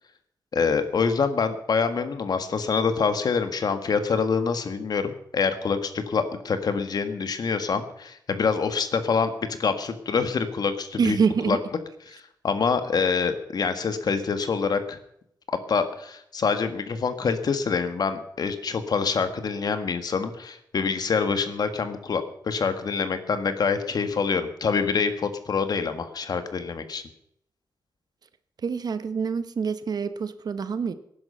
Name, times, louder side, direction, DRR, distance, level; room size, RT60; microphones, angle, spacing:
voice 1, 0.5-11.2 11.4-11.6 12.1-15.0 15.7-27.0, left 5 dB, 60° left, 9 dB, 1.7 m, -26 dB
voice 2, 11.0-11.6 28.6-30.9, right 5 dB, 60° right, 12 dB, 1.2 m, -26 dB
18.5 x 10.5 x 5.7 m, 0.73 s
wide cardioid pair, 110°, 8 cm